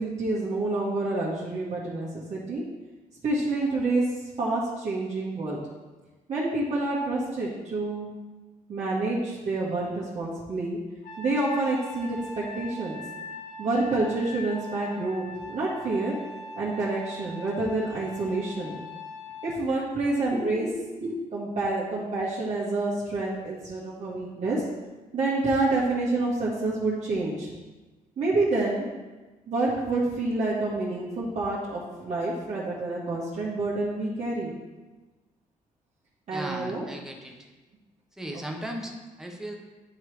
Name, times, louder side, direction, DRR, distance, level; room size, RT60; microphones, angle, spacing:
voice 1, 0.0-2.6 3.2-4.0 4.4-5.6 6.3-8.1 8.7-10.8 11.2-13.0 13.6-16.1 16.5-18.8 19.4-20.7 21.0-24.6 25.1-27.5 28.2-28.9 29.5-34.6 36.3-36.8, right 2 dB, 55° right, -8 dB, 1.6 m, -28 dB
Trumpet, 11.0-19.6, left 1 dB, 80° left, 1.1 m, -41 dB
voice 2, 36.3-37.5 38.2-39.6, right 1 dB, 5° right, 1 dB, 1.0 m, -36 dB
9.4 x 3.2 x 4.6 m, 1.2 s
cardioid pair, 85°, 14 cm